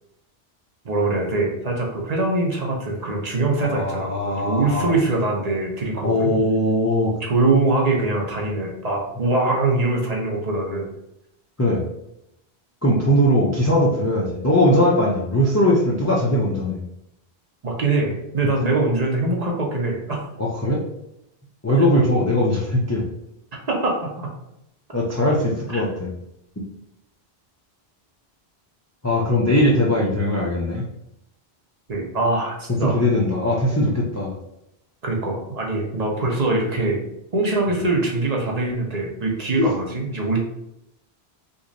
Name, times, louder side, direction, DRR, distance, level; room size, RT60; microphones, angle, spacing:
voice 1, 0.8-6.3 7.2-10.9 17.6-20.2 23.7-24.3 25.7-25.8 31.9-33.0 35.0-37.0 37.3-40.4, right 2 dB, 45° right, -1 dB, 0.7 m, -23 dB
voice 2, 3.6-4.9 6.0-7.2 11.6-11.8 12.8-16.8 20.4-20.8 21.6-23.1 24.9-26.1 26.6-26.7 29.0-30.8 32.8-34.4 39.6-39.7, left 1 dB, 25° left, -3 dB, 0.3 m, -20 dB
3.0 x 2.5 x 3.9 m, 0.82 s
omnidirectional pair, 1.1 m